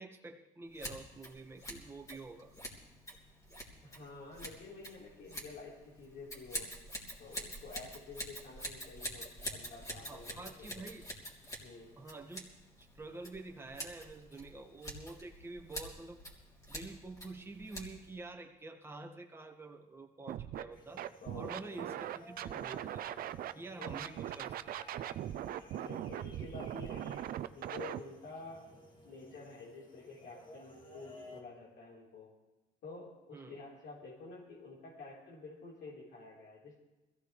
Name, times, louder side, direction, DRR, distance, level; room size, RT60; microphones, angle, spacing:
voice 1, 0.0-2.5 10.1-11.0 12.0-12.5 12.8-16.3 16.7-21.0 21.3-23.1 23.5-24.6 33.3-33.6, right 3 dB, 15° right, 1 dB, 1.7 m, -48 dB
Scissors, 0.7-18.2, equal, 20° left, 3.2 m, -47 dB
voice 2, 3.8-6.7 7.2-10.7 11.6-12.0 21.2-22.0 23.8-24.1 25.7-27.1 27.6-28.6 29.0-32.3 32.8-36.8, left 3 dB, 70° left, -7 dB, 4.0 m, -50 dB
Scratching (performance technique), 20.3-20.6 21.0-23.5 23.8-28.0, right 11 dB, 60° right, 0.6 m, -40 dB
sound 1, 20.7-31.4, left 1 dB, 50° left, 2.8 m, -57 dB
21.5 x 15.5 x 3.3 m, 1.1 s
cardioid pair, 110°, 17 cm